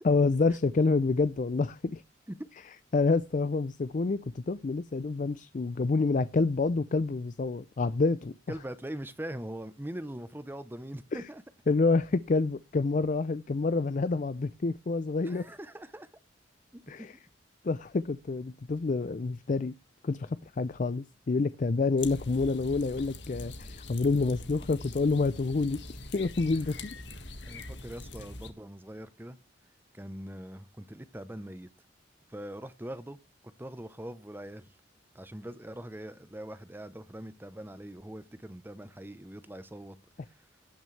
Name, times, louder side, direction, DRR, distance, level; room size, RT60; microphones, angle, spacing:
voice 1, 0.0-2.0 2.9-8.3 11.1-11.2 11.7-15.5 16.9-17.1 17.6-19.8 20.0-25.8 26.1-27.0, left 3 dB, 45° left, 0.4 m, -28 dB
voice 2, 8.5-11.4 15.2-16.1 16.7-17.1 27.5-29.4 29.9-31.7 32.3-33.2 33.6-34.8 35.1-40.0 40.3-40.4, right 1 dB, 10° right, 0.8 m, -42 dB
sound 1, 22.0-28.5, left 2 dB, 75° left, 1.7 m, -43 dB
17.5 x 6.3 x 3.3 m
head